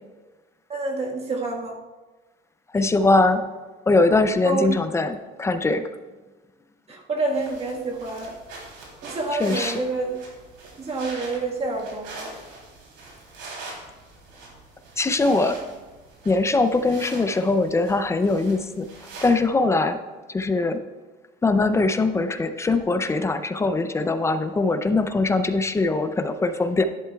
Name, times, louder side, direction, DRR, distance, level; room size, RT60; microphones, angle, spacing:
voice 1, 0.7-1.8 4.4-4.7 6.9-8.4 9.0-10.2 10.8-12.3, right 3 dB, 30° right, 0 dB, 1.5 m, -28 dB
voice 2, 2.7-3.4 3.9-5.8 9.4-9.8 15.0-15.6 16.3-18.9 19.2-20.0 20.3-20.8 21.4-26.8, left 3 dB, 15° left, 9 dB, 0.4 m, -21 dB
sound 1, 7.3-19.4, right 2 dB, 80° right, 3.2 m, -42 dB
11.5 x 10.5 x 2.3 m, 1.3 s
cardioid pair, 150°, 20 cm